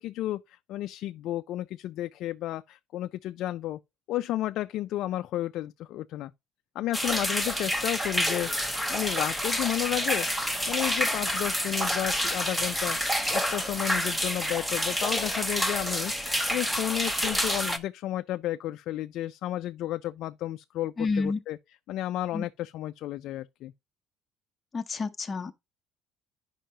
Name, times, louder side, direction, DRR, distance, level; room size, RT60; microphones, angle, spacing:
voice 1, 0.0-3.8 4.1-6.3 6.8-8.5 8.9-10.3 10.7-16.1 16.5-21.6 21.9-23.7, left 14 dB, 65° left, 0.3 m, -32 dB
sound 1, 6.9-17.8, equal, 5° right, 0.9 m, -28 dB
voice 2, 21.0-21.4 22.3-22.4 24.7-25.5, left 4 dB, 25° left, 0.8 m, -29 dB
10.0 x 5.5 x 2.8 m
cardioid pair, 125°, 0 cm